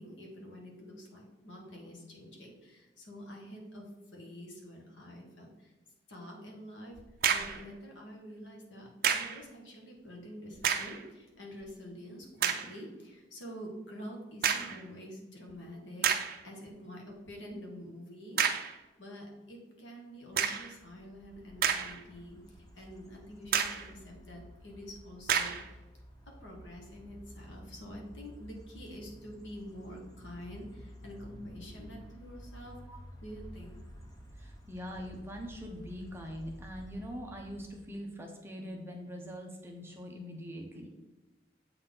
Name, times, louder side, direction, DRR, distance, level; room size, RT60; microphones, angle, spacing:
voice 1, 0.0-5.7 6.1-7.0 7.3-25.8 26.4-32.8 33.2-33.8, equal, 80° left, 0 dB, 1.6 m, -47 dB
sound 1, 7.0-7.6 9.0-9.4 10.5-11.0 11.6-11.7 12.4-12.7 14.4-14.8 15.5-15.6 16.0-16.4 18.4-18.8 20.4-20.7 21.4-22.2 22.6-22.7 23.5-23.9 25.3-25.7, right 7 dB, 50° right, 0.5 m, -30 dB
sound 2, 20.6-38.0, equal, 20° left, 1.0 m, -52 dB
voice 2, 34.4-40.9, equal, 15° right, 1 dB, 0.8 m, -43 dB
7.9 x 4.1 x 3.8 m, 1.1 s
head